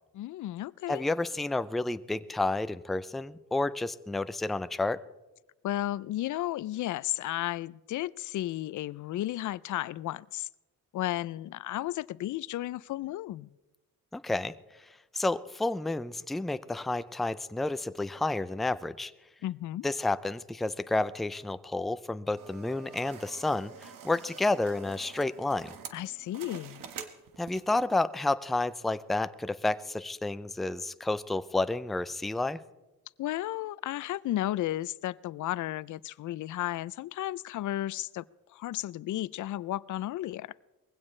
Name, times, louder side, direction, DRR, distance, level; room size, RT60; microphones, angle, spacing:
voice 1, 0.1-1.0 5.6-10.5 10.9-13.5 19.4-19.9 25.9-26.8 33.2-38.2 38.5-40.5, left 14 dB, 60° left, 0.5 m, -33 dB
voice 2, 0.9-5.0 14.1-14.5 15.1-19.1 19.8-25.7 27.4-32.6, left 2 dB, ahead, 0.4 m, -30 dB
sound 1, 22.4-27.8, right 7 dB, 65° right, 1.5 m, -47 dB
21.0 x 16.0 x 3.2 m
cardioid pair, 120°, 35 cm